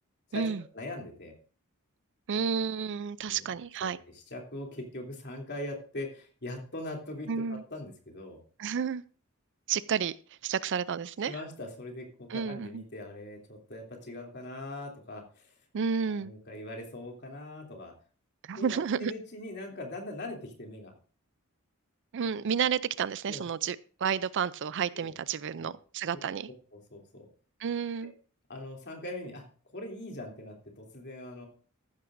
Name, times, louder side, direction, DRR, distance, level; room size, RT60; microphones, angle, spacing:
voice 1, 0.3-1.3 3.3-3.4 3.8-8.4 11.3-15.5 16.2-17.9 18.5-20.9 23.3-23.4 24.9-25.1 25.6-25.8 26.1-26.2 26.7-27.3 28.0-28.1 28.5-29.4 29.7-31.5, left 1 dB, 50° left, 3.0 m, -41 dB
voice 2, 2.3-4.0 7.3-7.6 8.6-9.0 9.7-10.2 10.4-11.3 12.3-12.8 15.7-16.3 18.4-19.1 22.1-26.5 27.6-28.1, right 7 dB, 55° right, 0.4 m, -31 dB
14.0 x 11.5 x 2.6 m
head